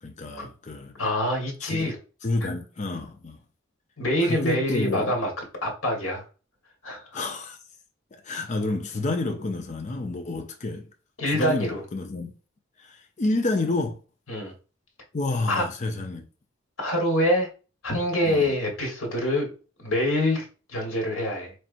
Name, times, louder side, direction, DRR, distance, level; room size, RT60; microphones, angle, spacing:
voice 1, 0.0-0.9 1.6-1.9 2.2-3.4 4.2-5.1 7.1-7.6 8.1-10.9 11.3-12.3 12.8-14.0 15.1-16.2 18.2-18.5, left 2 dB, 35° left, 0.5 m, -29 dB
voice 2, 1.0-2.0 4.0-5.3 5.6-6.2 6.8-7.2 11.2-11.8 14.3-14.5 15.5-15.7 16.8-17.5 17.8-19.5 19.8-21.5, left 1 dB, 75° left, 1.5 m, -25 dB
4.3 x 3.3 x 2.5 m
head